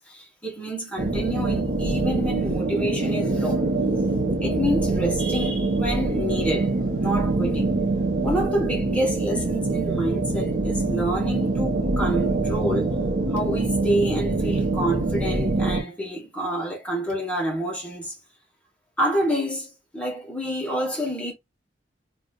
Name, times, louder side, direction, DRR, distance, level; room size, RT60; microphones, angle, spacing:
voice 1, 0.0-3.7 4.4-7.7 8.2-13.0 13.3-18.2 19.0-21.3, right 1 dB, 5° left, 1.1 m, -28 dB
sound 1, 1.0-15.8, right 2 dB, 65° right, 1.0 m, -24 dB
4.0 x 2.5 x 2.3 m
head